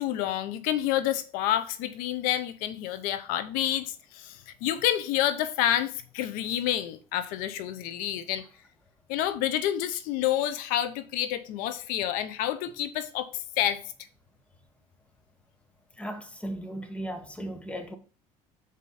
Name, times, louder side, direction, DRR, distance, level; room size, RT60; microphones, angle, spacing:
voice 1, 0.0-8.4 9.1-13.8, left 12 dB, 80° left, 0.7 m, -29 dB
voice 2, 16.0-18.0, equal, 10° left, 1.3 m, -36 dB
6.7 x 5.0 x 4.1 m
cardioid pair, 110°, 14 cm